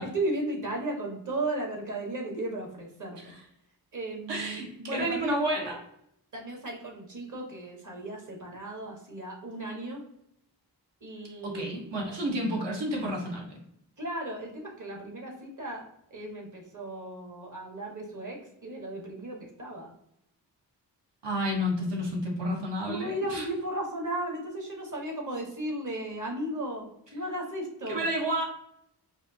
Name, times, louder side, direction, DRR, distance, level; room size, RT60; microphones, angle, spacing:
voice 1, 0.1-3.3 3.9-5.4 6.3-10.0 11.0-11.7 14.0-15.8 16.1-18.4 18.6-19.9 22.8-26.9 27.1-28.0, right 1 dB, 45° right, 0 dB, 1.5 m, -35 dB
voice 2, 4.3-5.8 11.4-13.6 21.2-23.4 27.9-28.4, equal, 75° right, -1 dB, 1.4 m, -30 dB
4.9 x 2.8 x 2.8 m, 0.75 s
wide cardioid pair, 100°, 41 cm